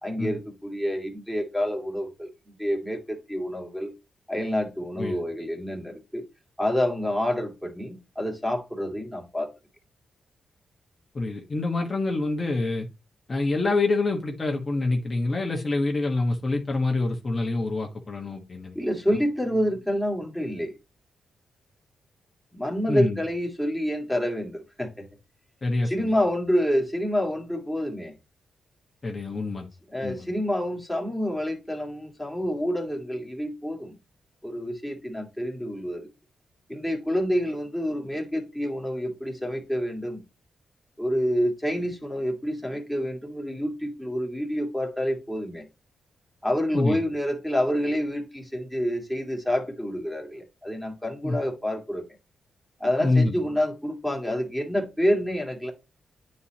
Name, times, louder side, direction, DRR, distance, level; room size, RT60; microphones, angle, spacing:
voice 1, 0.0-3.9 4.3-6.2 6.6-9.5 18.7-20.7 22.5-25.1 25.8-28.1 29.9-34.0 34.4-36.1 36.7-40.2 41.0-45.7 46.4-52.0 52.8-55.7, equal, ahead, 2.2 m, -28 dB
voice 2, 11.1-12.9 13.3-18.8 22.9-23.2 25.6-26.1 29.0-29.7 30.0-30.3 46.7-47.0 51.2-51.4 53.0-53.3, left 2 dB, 35° left, 1.3 m, -26 dB
9.4 x 4.3 x 2.9 m
cardioid pair, 75°, 0 cm